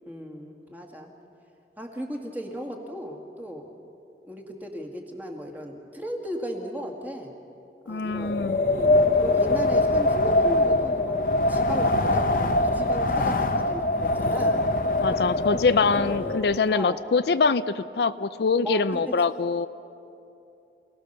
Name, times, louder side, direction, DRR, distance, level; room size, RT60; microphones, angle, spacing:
voice 1, 0.1-1.1 1.8-3.7 4.3-7.3 7.8-8.3 8.6-14.6 15.0-15.2 15.6-16.3 16.7-17.0 18.6-19.2, equal, 10° right, 1 dB, 2.1 m, -36 dB
voice 2, 7.9-8.6 15.0-19.7, left 4 dB, 70° left, 13 dB, 0.5 m, -24 dB
Wind, 8.1-16.6, left 2 dB, 50° left, 0.9 m, -23 dB
28.0 x 18.0 x 6.7 m, 2.7 s
head